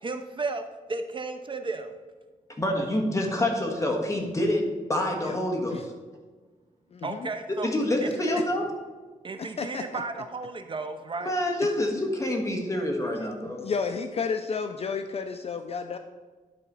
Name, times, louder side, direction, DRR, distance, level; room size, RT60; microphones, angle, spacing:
voice 1, 0.0-1.9 7.0-7.7 8.0-8.1 9.2-11.3, right 3 dB, 35° right, 8 dB, 0.5 m, -34 dB
voice 2, 2.6-4.6 4.9-5.8 7.6-8.6 11.2-13.6, left 1 dB, 20° left, 1 dB, 1.4 m, -27 dB
voice 3, 6.9-7.3 8.3-8.4 9.4-10.0 13.0-16.0, left 5 dB, 45° left, 7 dB, 0.4 m, -32 dB
11.0 x 4.0 x 5.5 m, 1.4 s
wide cardioid pair, 135°, 14 cm